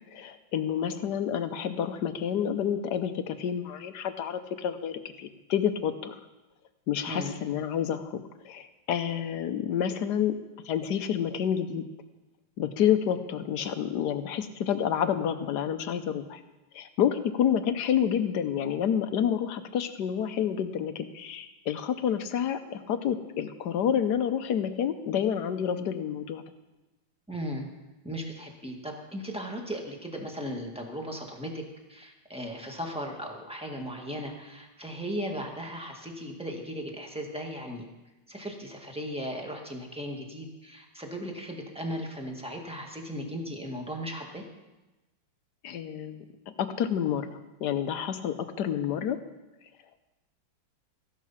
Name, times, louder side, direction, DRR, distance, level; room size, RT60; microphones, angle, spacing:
voice 1, 0.1-6.2 6.9-10.3 10.6-11.9 12.6-16.4 16.7-26.4 45.6-46.2 46.6-49.2, left 9 dB, 65° left, 10 dB, 1.1 m, -29 dB
voice 2, 7.1-7.4 27.3-27.7 28.0-31.6 31.9-37.9 38.3-44.4, equal, 5° right, 1 dB, 1.6 m, -37 dB
15.0 x 11.0 x 5.8 m, 1.1 s
omnidirectional pair, 2.4 m